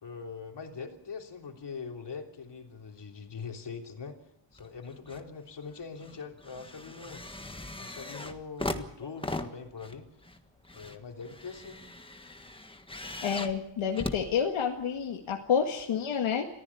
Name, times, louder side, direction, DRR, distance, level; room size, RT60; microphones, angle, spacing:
voice 1, 0.0-4.2 4.5-7.2 7.8-10.1 10.7-11.8, left 5 dB, 55° left, 3 dB, 3.4 m, -42 dB
sound 1, 4.5-5.3 5.6-15.0 15.8-15.9, left 2 dB, 10° left, 1.5 m, -40 dB
voice 2, 13.2-16.5, left 7 dB, 80° left, 2 dB, 2.0 m, -29 dB
23.5 x 15.0 x 8.5 m, 0.77 s
wide cardioid pair, 115°, 49 cm